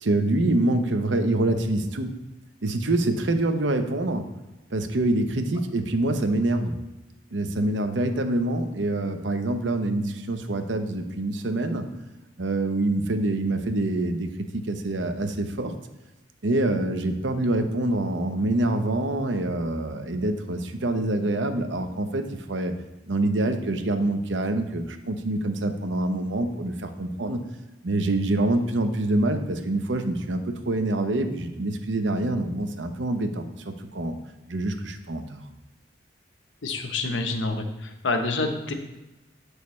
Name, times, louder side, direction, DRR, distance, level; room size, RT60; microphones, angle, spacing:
voice 1, 0.0-2.1 2.6-4.3 4.7-6.8 7.3-11.8 12.4-15.7 16.4-22.7 23.1-27.4 27.8-34.2 34.5-35.4, right 2 dB, 80° right, 7 dB, 0.8 m, -26 dB
voice 2, 36.6-38.7, left 3 dB, 90° left, 6 dB, 0.9 m, -27 dB
8.3 x 6.4 x 3.2 m, 1.0 s
head